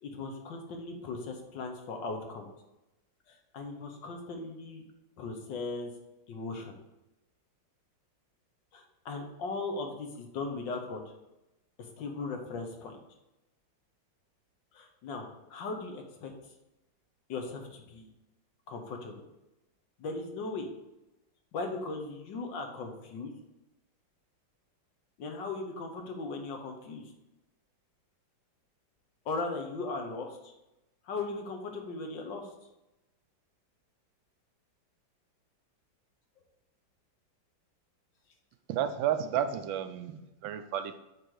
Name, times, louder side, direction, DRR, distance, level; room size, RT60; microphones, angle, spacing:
voice 1, 0.0-2.5 3.3-4.8 5.2-5.9 6.3-6.7 8.7-11.0 11.8-13.0 14.7-16.3 17.3-18.1 18.7-19.2 20.0-20.7 21.5-23.3 25.2-27.1 29.2-30.5 31.0-32.5, left 3 dB, 70° left, 3 dB, 1.7 m, -38 dB
voice 2, 38.7-41.0, right 9 dB, 80° right, 9 dB, 1.4 m, -32 dB
7.9 x 3.9 x 4.7 m, 0.94 s
omnidirectional pair, 2.1 m